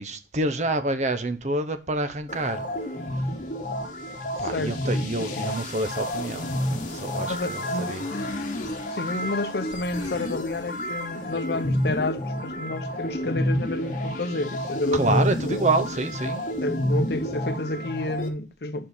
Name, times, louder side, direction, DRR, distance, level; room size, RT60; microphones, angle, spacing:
voice 1, 0.0-2.6 4.4-8.1 14.9-16.4, right 2 dB, 40° right, 0.7 m, -27 dB
sound 1, 2.3-18.3, left 1 dB, 45° left, 1.1 m, -29 dB
voice 2, 4.4-5.5 7.2-7.9 8.9-15.6 16.6-18.9, left 2 dB, 60° left, 0.7 m, -30 dB
5.5 x 4.9 x 6.5 m
head